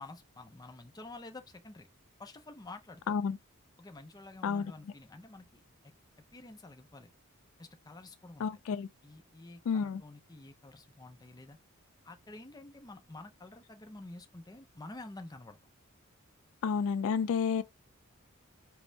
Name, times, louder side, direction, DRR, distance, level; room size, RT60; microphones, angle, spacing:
voice 1, 0.0-1.9 2.2-3.2 3.8-5.9 6.3-7.1 7.6-8.5 9.0-11.6 12.0-15.6, left 2 dB, 20° left, 0.6 m, -49 dB
voice 2, 3.1-3.4 4.4-4.7 8.4-8.9 9.7-10.0 16.6-17.6, left 6 dB, 65° left, 0.3 m, -30 dB
5.2 x 2.0 x 2.7 m
head